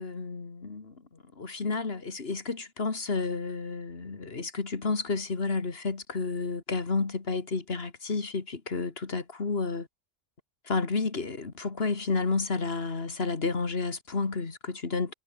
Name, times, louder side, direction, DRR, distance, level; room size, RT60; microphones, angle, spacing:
voice 1, 0.0-9.9 10.6-15.1, left 4 dB, 55° left, 2.3 m, -31 dB
omnidirectional pair, 1.2 m